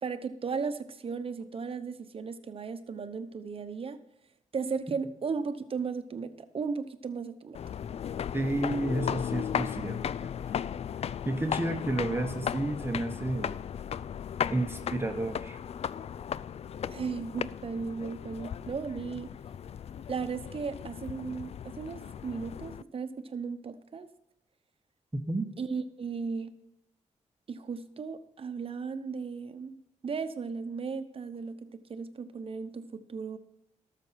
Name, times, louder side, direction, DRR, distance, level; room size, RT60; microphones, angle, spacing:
voice 1, 0.0-4.0 4.5-7.6 16.9-19.3 20.1-24.1 25.6-26.5 27.5-29.7 30.0-33.4, right 5 dB, 45° right, 10 dB, 0.9 m, -36 dB
sound 1, 7.5-22.8, left 8 dB, 55° left, 0.4 m, -36 dB
voice 2, 8.3-10.1 11.3-13.5 14.5-15.6 25.3-25.5, right 2 dB, 20° right, 5 dB, 1.2 m, -31 dB
13.0 x 6.8 x 5.8 m, 0.86 s
cardioid pair, 80°, 13 cm